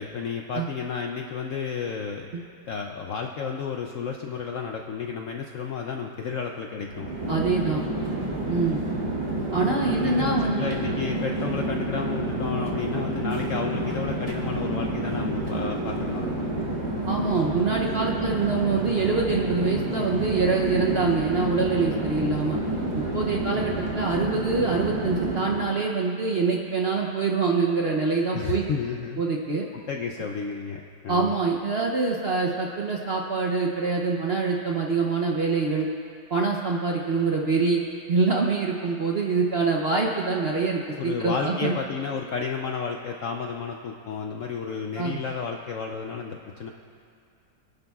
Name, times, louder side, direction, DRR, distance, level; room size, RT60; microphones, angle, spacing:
voice 1, 0.0-2.3 2.7-7.1 9.9-16.3 28.3-29.2 29.7-31.3 41.0-46.7, left 6 dB, 70° left, 2 dB, 0.7 m, -32 dB
Chatter / Fixed-wing aircraft airplane, 6.8-25.8, right 1 dB, 25° right, 1.4 m, -29 dB
voice 2, 7.3-7.8 8.4-8.8 9.5-10.6 17.1-22.6 23.1-28.6 29.2-29.6 31.1-35.9 36.3-37.8 38.1-41.7 45.0-45.2, right 4 dB, 55° right, 0 dB, 0.7 m, -25 dB
23.0 x 10.5 x 2.4 m, 2.4 s
omnidirectional pair, 1.9 m